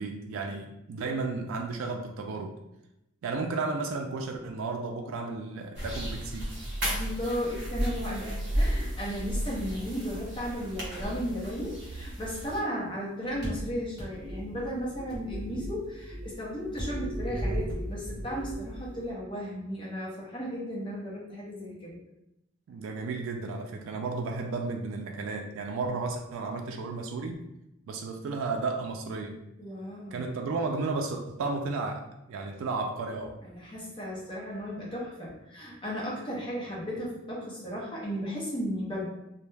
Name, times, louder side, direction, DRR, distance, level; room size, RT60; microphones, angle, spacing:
voice 1, 0.0-2.5 3.2-6.6 22.7-27.3 27.9-29.4 30.1-33.4, right 3 dB, 75° right, 2 dB, 0.3 m, -33 dB
sound 1, 5.7-12.6, equal, 55° right, 0.7 m, -33 dB
voice 2, 6.9-22.0 29.6-30.3 33.4-39.0, equal, 25° left, -5 dB, 0.6 m, -35 dB
sound 2, 7.0-9.4 9.7-10.8 13.2-19.1, equal, 20° right, 1.0 m, -38 dB
2.2 x 2.0 x 3.1 m, 0.87 s
head